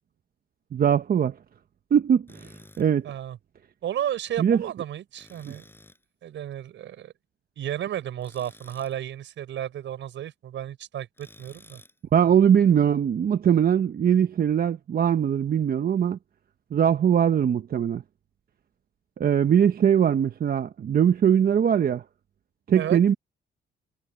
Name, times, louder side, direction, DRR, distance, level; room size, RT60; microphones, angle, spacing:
voice 1, 0.7-1.3 1.9-3.1 4.4-4.6 5.5-5.6 12.1-16.2 16.7-18.0 19.2-22.0 22.7-23.1, right 8 dB, 50° right, 0.9 m, -21 dB
Tools, 2.3-2.9 5.2-6.0 8.2-9.0 11.2-12.0, left 1 dB, 10° left, 7.1 m, -51 dB
voice 2, 3.0-3.4 3.8-5.6 6.2-7.1 7.6-11.8 22.7-23.0, right 11 dB, 70° right, 5.6 m, -33 dB
cardioid pair, 90°, 20 cm